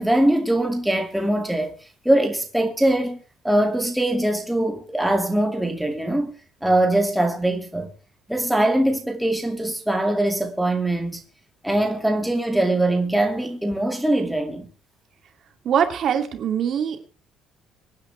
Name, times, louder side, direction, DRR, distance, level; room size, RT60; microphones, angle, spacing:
voice 1, 0.0-1.7 2.0-3.2 3.4-6.3 6.6-7.9 8.3-11.2 11.6-14.7, right 1 dB, ahead, 2.3 m, -22 dB
voice 2, 15.6-17.1, right 8 dB, 45° right, 2.5 m, -23 dB
25.5 x 10.0 x 3.3 m
cardioid pair, 165°, 0 cm